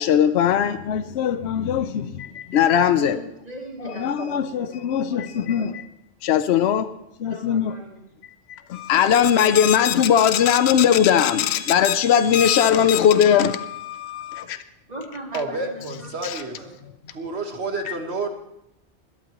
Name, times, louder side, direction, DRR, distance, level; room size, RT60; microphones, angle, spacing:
voice 1, 0.0-3.2 4.0-5.8 6.2-6.9 7.2-7.7 8.5-14.6, left 9 dB, 80° left, 0.9 m, -20 dB
voice 2, 2.9-5.8 7.2-8.0 14.9-16.7, right 2 dB, 40° right, 3.1 m, -39 dB
voice 3, 15.3-16.7 17.1-18.3, right 3 dB, 75° right, 1.9 m, -30 dB
21.0 x 12.0 x 3.0 m
omnidirectional pair, 1.1 m